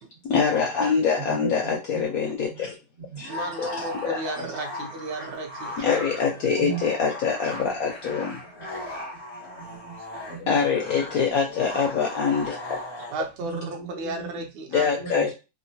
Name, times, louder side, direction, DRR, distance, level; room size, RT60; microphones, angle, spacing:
voice 1, 0.2-2.8 3.2-3.3 3.6-4.2 5.8-8.4 10.5-12.8 14.7-15.3, left 6 dB, 75° left, 0 dB, 0.8 m, -24 dB
voice 2, 1.1-2.0 2.5-2.6 3.1-3.2 4.4-4.5 6.6-7.1 8.1-8.3 8.6-8.7 9.1-10.6 11.5-11.6 13.4-14.5 15.0-15.1, right 5 dB, 55° right, -3 dB, 0.6 m, -38 dB
sound 1, 3.1-13.3, left 1 dB, 45° left, 0.3 m, -38 dB
voice 3, 3.3-6.4 13.1-15.3, right 2 dB, 75° right, 4 dB, 1.1 m, -34 dB
3.5 x 2.1 x 2.6 m, 0.28 s
omnidirectional pair, 2.0 m